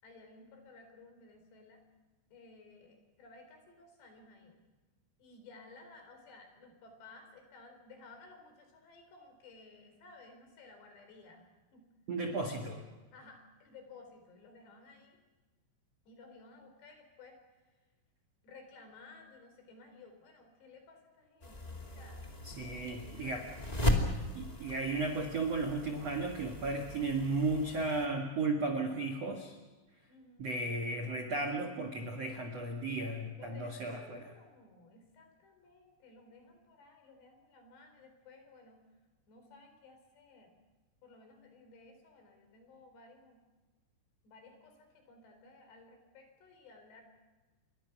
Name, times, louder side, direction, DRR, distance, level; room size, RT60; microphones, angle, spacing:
voice 1, 0.0-1.8 2.3-4.6 5.2-11.8 12.3-12.9 13.1-15.2 16.1-17.4 18.4-24.2 30.1-30.5 33.4-38.8 39.3-40.6 41.0-43.4 44.2-47.0, left 3 dB, 55° left, 5 dB, 6.3 m, -57 dB
voice 2, 12.1-12.8 22.4-23.4 24.3-29.6 30.4-34.3, right 3 dB, 70° right, 3 dB, 1.5 m, -35 dB
sound 1, 21.4-28.1, left 1 dB, 35° left, 0.6 m, -37 dB
28.5 x 23.0 x 6.1 m, 1.2 s
omnidirectional pair, 5.9 m